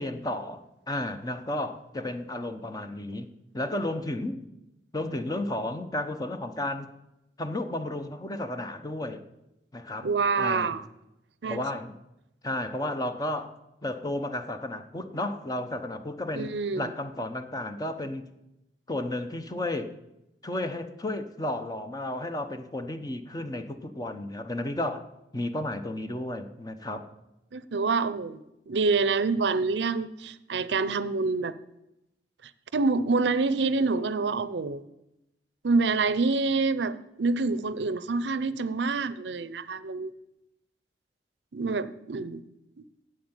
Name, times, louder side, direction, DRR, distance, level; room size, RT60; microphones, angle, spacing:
voice 1, 0.0-3.3 3.5-4.4 4.9-6.9 7.4-9.2 9.7-10.1 10.4-10.7 11.5-12.0 12.4-13.5 13.8-18.3 18.9-19.9 20.4-25.1 25.3-27.1, left 1 dB, 20° left, 9 dB, 0.8 m, -33 dB
voice 2, 10.0-10.8 11.4-11.6 16.3-16.9 27.5-31.5 32.4-34.8 35.6-40.1 41.5-42.4, right 4 dB, 75° right, 16 dB, 0.6 m, -27 dB
9.3 x 7.9 x 8.9 m, 0.89 s
head